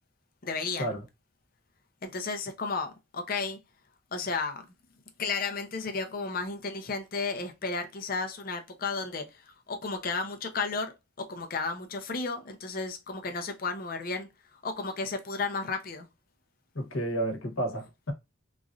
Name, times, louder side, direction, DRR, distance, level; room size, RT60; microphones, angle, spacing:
voice 1, 0.4-0.9 2.0-3.6 4.1-4.6 5.2-10.9 11.2-14.3 14.6-16.1, left 4 dB, 45° left, 0.6 m, -33 dB
voice 2, 16.7-18.1, right 1 dB, 75° left, 1.1 m, -31 dB
3.1 x 2.6 x 2.4 m
head